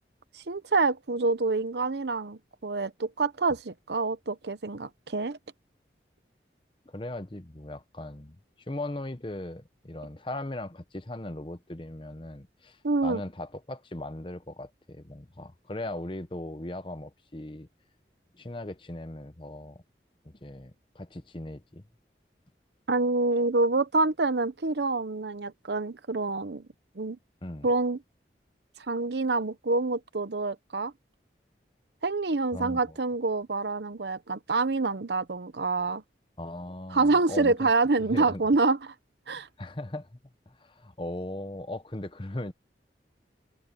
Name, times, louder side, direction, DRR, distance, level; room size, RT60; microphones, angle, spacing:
voice 1, 0.3-5.4 12.8-13.2 22.9-26.7 27.0-27.2 27.6-28.0 28.8-30.9 32.0-36.0 36.9-38.9 39.3-39.5, right 3 dB, 75° right, 0.8 m, -27 dB
voice 2, 6.8-17.7 18.3-19.8 20.2-21.8 27.4-27.7 32.5-33.0 36.4-37.7 38.0-38.4 39.3-40.2 40.5-42.5, left 1 dB, 30° left, 1.0 m, -38 dB
head